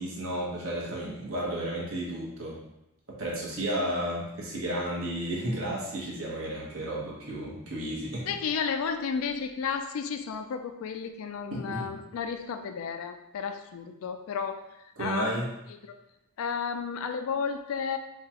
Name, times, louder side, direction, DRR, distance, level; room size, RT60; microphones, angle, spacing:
voice 1, 0.0-2.6 3.2-8.3 11.5-11.9 15.0-15.4, right 1 dB, 65° right, -4 dB, 1.1 m, -32 dB
voice 2, 8.3-14.6 15.0-15.4 15.7-15.9 16.4-18.0, left 6 dB, 70° left, 7 dB, 0.3 m, -32 dB
4.7 x 2.4 x 2.9 m, 0.87 s
head